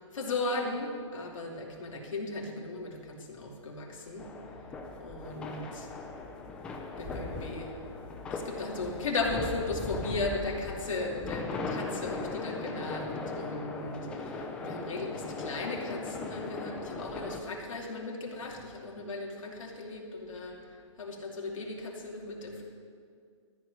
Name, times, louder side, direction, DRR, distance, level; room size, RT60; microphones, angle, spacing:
voice 1, 0.1-4.3 5.0-5.9 6.9-7.8 8.3-20.6 21.0-22.6, left 2 dB, 90° left, -1 dB, 2.8 m, -36 dB
sound 1, 4.2-17.4, left 3 dB, 5° left, 0.5 m, -38 dB
14.0 x 6.0 x 9.6 m, 2.2 s
hypercardioid pair, 170°, 16 cm